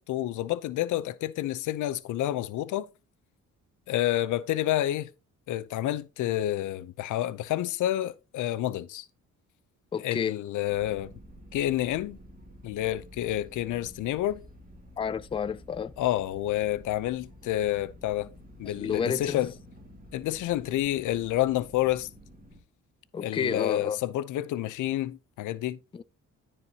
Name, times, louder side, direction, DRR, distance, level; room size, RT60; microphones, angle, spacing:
voice 1, 0.0-2.9 3.9-5.1 5.5-9.1 10.0-11.1 11.5-12.2 12.6-14.4 16.0-18.3 18.6-19.5 20.1-22.1 23.2-25.8, left 14 dB, 80° left, 0.6 m, -29 dB
voice 2, 9.9-10.4 15.0-15.9 18.6-19.5 23.1-24.0 25.9-26.0, left 6 dB, 20° left, 0.4 m, -30 dB
sound 1, 10.7-22.6, equal, 30° right, 2.4 m, -50 dB
13.5 x 4.6 x 2.8 m
cardioid pair, 90°, 30 cm